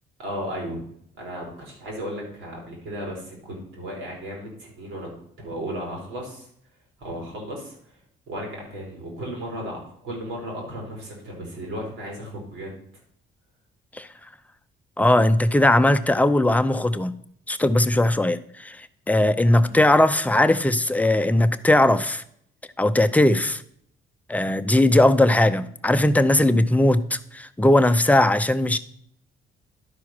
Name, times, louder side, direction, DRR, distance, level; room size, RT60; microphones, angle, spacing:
voice 1, 0.2-0.8 1.1-5.1 5.4-6.5 7.0-7.9 8.3-12.7, equal, 90° right, -1 dB, 3.9 m, -35 dB
voice 2, 15.0-17.2 17.5-22.2 22.8-23.6 24.3-28.8, left 1 dB, 5° left, 10 dB, 0.6 m, -19 dB
11.5 x 4.7 x 5.8 m, 0.67 s
cardioid pair, 90°, 20 cm